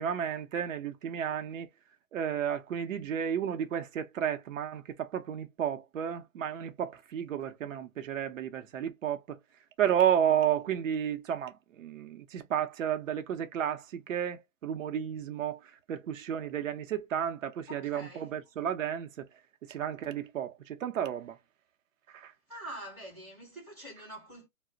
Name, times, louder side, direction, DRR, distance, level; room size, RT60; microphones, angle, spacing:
voice 1, 0.0-1.7 2.1-9.4 9.8-19.3 19.6-21.4 22.1-22.3, right 9 dB, 65° right, 0.7 m, -32 dB
voice 2, 17.7-18.4 22.5-24.5, right 1 dB, 5° right, 0.4 m, -45 dB
2.4 x 2.1 x 3.7 m
hypercardioid pair, 145°, 42 cm